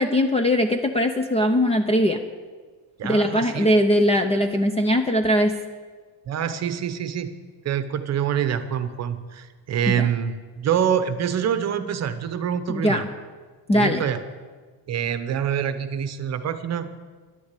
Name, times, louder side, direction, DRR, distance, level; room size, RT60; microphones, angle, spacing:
voice 1, 0.0-2.2 3.0-5.5 9.9-10.1 12.7-13.0 13.7-14.0, equal, 15° left, 6 dB, 0.5 m, -20 dB
voice 2, 3.0-3.7 6.3-7.3 7.6-13.0 13.7-14.2 14.9-16.9, right 8 dB, 35° right, 11 dB, 0.9 m, -26 dB
12.0 x 11.0 x 8.2 m, 1.4 s
cardioid pair, 155°, 44 cm